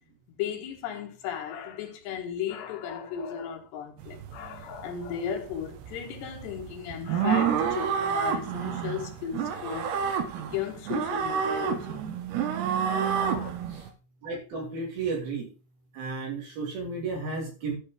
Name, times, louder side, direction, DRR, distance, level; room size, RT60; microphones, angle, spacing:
voice 1, 0.4-9.9 10.4-12.0 12.8-13.5, left 8 dB, 80° left, 3.7 m, -35 dB
sound 1, 4.0-13.9, right 8 dB, 75° right, 3.3 m, -29 dB
voice 2, 14.2-15.5 15.9-17.8, right 4 dB, 60° right, 4.6 m, -33 dB
13.0 x 5.2 x 5.1 m
omnidirectional pair, 4.9 m